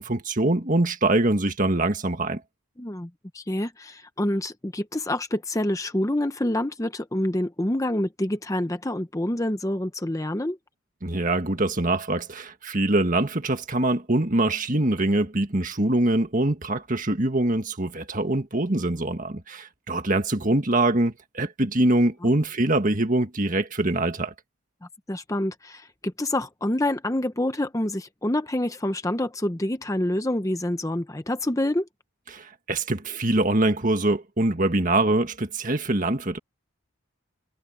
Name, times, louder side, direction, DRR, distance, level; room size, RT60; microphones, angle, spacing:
voice 1, 0.0-2.4 11.0-24.3 32.3-36.4, right 2 dB, 40° right, 1.8 m, -24 dB
voice 2, 2.8-10.6 22.2-22.3 25.1-31.9, left 1 dB, 15° left, 0.8 m, -27 dB
head